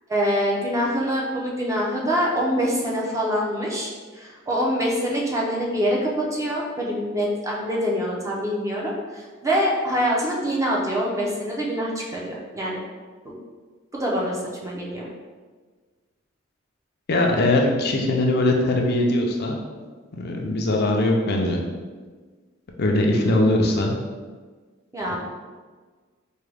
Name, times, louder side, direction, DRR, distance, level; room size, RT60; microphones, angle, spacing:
voice 1, 0.1-12.8 13.2-13.3 13.9-15.1 23.2-23.7 24.9-25.2, equal, 15° right, -3 dB, 0.6 m, -25 dB
voice 2, 17.1-19.6 20.1-21.6 22.8-23.9 25.1-25.2, left 1 dB, 50° left, 1 dB, 0.5 m, -21 dB
4.7 x 2.3 x 3.3 m, 1.4 s
head